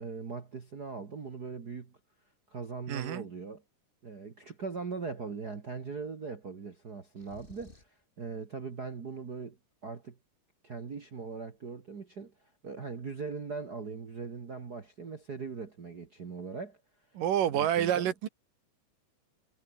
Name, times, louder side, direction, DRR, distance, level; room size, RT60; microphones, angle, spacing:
voice 1, 0.0-1.9 2.5-3.6 4.0-7.9 8.2-9.6 9.8-10.2 10.6-12.3 12.6-16.8 17.5-18.1, right 5 dB, 35° right, 1.8 m, -40 dB
voice 2, 2.9-3.3 17.2-18.3, right 10 dB, 75° right, 3.6 m, -28 dB
sound 1, 7.1-8.0, left 2 dB, 15° left, 2.7 m, -54 dB
omnidirectional pair, 3.9 m